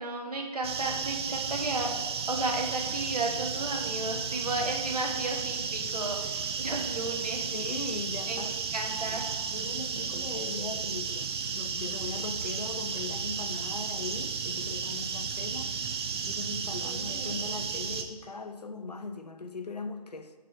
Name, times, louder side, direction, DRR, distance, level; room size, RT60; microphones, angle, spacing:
voice 1, 0.0-1.9 2.3-7.5 8.3-8.4 8.7-9.2 16.8-17.4, right 2 dB, 75° right, 1.3 m, -33 dB
sound 1, 0.6-18.0, right 6 dB, 40° right, 0.6 m, -33 dB
voice 2, 7.5-8.6 9.1-15.7 16.2-20.3, left 3 dB, 85° left, 0.6 m, -39 dB
6.8 x 4.7 x 4.6 m
figure-of-eight pair, 125°, 20 cm